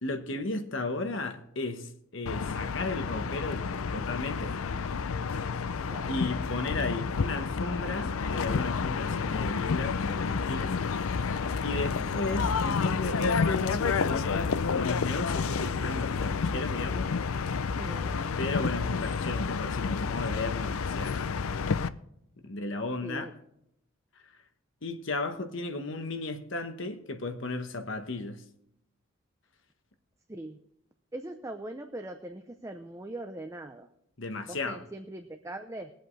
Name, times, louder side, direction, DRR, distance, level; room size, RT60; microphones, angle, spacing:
voice 1, 0.0-4.5 6.1-10.7 11.6-17.1 18.4-21.3 22.4-23.3 24.8-28.4 34.2-34.8, left 2 dB, 60° left, 1.2 m, -34 dB
sound 1, 2.3-21.9, left 5 dB, 85° left, 0.5 m, -30 dB
voice 2, 5.9-6.2 11.8-12.2 17.8-18.3 23.0-23.3 30.3-30.6 31.1-33.9 34.5-35.9, right 1 dB, 15° right, 0.6 m, -41 dB
21.5 x 8.0 x 3.3 m
head